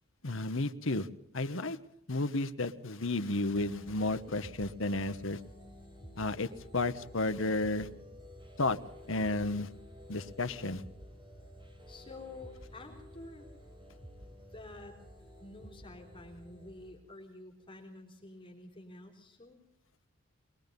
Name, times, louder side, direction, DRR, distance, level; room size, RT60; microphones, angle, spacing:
voice 1, 0.2-1.1 1.3-1.8 2.1-5.4 6.2-7.9 8.6-8.8 9.1-9.7 10.1-10.8, left 2 dB, 65° left, 11 dB, 1.2 m, -32 dB
sound 1, 3.5-16.9, equal, 25° right, 4.6 m, -52 dB
voice 2, 11.9-13.5 14.5-15.0 15.4-19.6, left 2 dB, 25° left, 1 dB, 3.9 m, -49 dB
22.5 x 22.0 x 5.4 m, 0.73 s
head